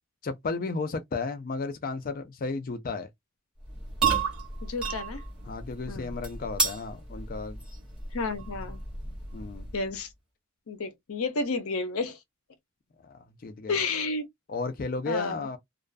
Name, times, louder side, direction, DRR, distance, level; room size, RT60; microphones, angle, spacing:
voice 1, 0.2-3.1 5.5-7.6 9.3-9.7 13.0-13.8 14.5-15.6, left 3 dB, 40° left, 0.4 m, -33 dB
sound 1, 3.6-10.0, right 4 dB, 5° right, 1.3 m, -33 dB
voice 2, 4.6-5.2 5.9-6.1 8.1-8.8 9.7-10.1 10.7-12.2 13.7-14.3 15.1-15.5, left 3 dB, 90° left, 0.6 m, -31 dB
2.4 x 2.2 x 2.3 m
head